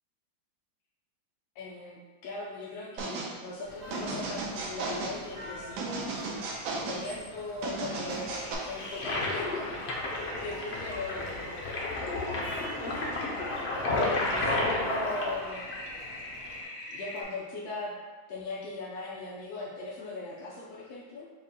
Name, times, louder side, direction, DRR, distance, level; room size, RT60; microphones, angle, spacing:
voice 1, 1.5-6.4 6.9-11.4 12.6-13.2 13.5-13.6 13.9-15.6 16.9-17.9 18.3-21.4, left 2 dB, 70° left, -5 dB, 0.9 m, -39 dB
sound 1, 3.0-3.3 3.9-5.2 5.8-7.0 7.6-8.5, right 3 dB, 85° right, 1.5 m, -35 dB
sound 2, 3.6-16.6, equal, 60° right, 1.2 m, -47 dB
Toilet flush, 8.1-17.2, left 2 dB, 90° left, 0.5 m, -32 dB
4.8 x 2.4 x 4.1 m, 1.3 s
omnidirectional pair, 2.2 m